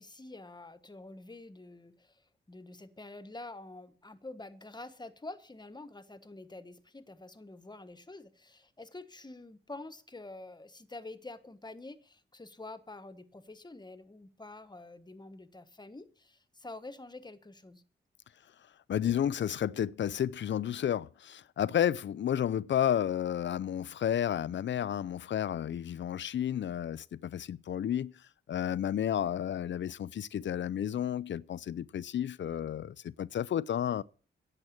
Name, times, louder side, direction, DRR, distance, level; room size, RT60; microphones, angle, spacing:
voice 1, 0.0-17.8, left 2 dB, 20° left, 1.4 m, -47 dB
voice 2, 18.9-28.1 28.5-34.0, left 10 dB, 70° left, 0.5 m, -31 dB
11.0 x 7.6 x 8.6 m
cardioid pair, 60°, 20 cm